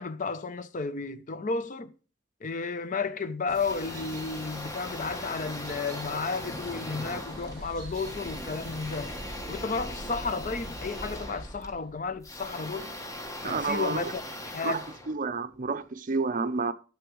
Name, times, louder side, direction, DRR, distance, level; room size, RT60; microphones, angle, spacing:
voice 1, 0.0-1.9 2.4-9.1 9.5-12.9 13.4-14.8, left 4 dB, 45° left, 0.6 m, -33 dB
sound 1, 3.5-15.8, left 1 dB, 15° left, 1.1 m, -40 dB
sound 2, 3.5-9.2, right 2 dB, 20° right, 2.3 m, -48 dB
sound 3, 7.2-14.4, equal, 5° right, 2.5 m, -45 dB
voice 2, 13.4-14.1 14.6-14.8 15.1-16.7, right 4 dB, 45° right, 0.6 m, -29 dB
11.5 x 6.9 x 3.1 m
head